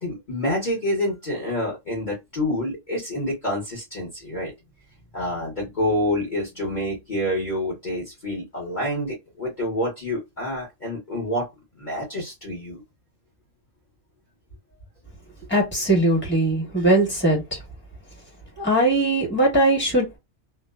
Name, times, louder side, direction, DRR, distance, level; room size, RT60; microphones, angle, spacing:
voice 1, 0.0-4.5 5.1-11.5 11.8-12.8, left 1 dB, 40° left, 1.1 m, -27 dB
voice 2, 15.5-17.4 18.6-20.2, right 1 dB, 10° left, 1.3 m, -20 dB
2.5 x 2.2 x 2.2 m
omnidirectional pair, 1.3 m